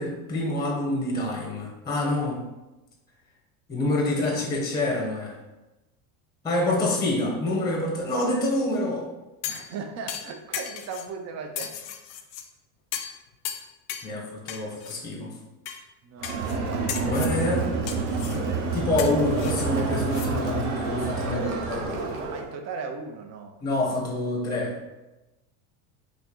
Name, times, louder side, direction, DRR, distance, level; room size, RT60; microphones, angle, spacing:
voice 1, 0.0-2.5 3.7-5.4 6.4-9.1 14.0-15.3 17.0-17.7 18.3-22.1 23.6-24.8, left 1 dB, 10° left, -2 dB, 0.7 m, -27 dB
sound 1, 9.4-9.7 10.1-11.1 11.5-12.4 12.9-13.2 13.4-14.1 14.5-15.0 15.6-15.8 16.2-16.6 16.9-17.4 17.9-18.4 19.0-20.3 20.6-20.7, left 9 dB, 60° left, 0.5 m, -35 dB
voice 2, 9.5-11.8 16.0-16.7 17.2-17.7 18.1-18.8 22.3-23.6, right 5 dB, 40° right, 5 dB, 0.5 m, -38 dB
Crowd, 16.2-22.5, right 4 dB, 90° right, 0.7 m, -28 dB
3.8 x 2.4 x 2.9 m, 1.0 s
supercardioid pair, 105°, 43 cm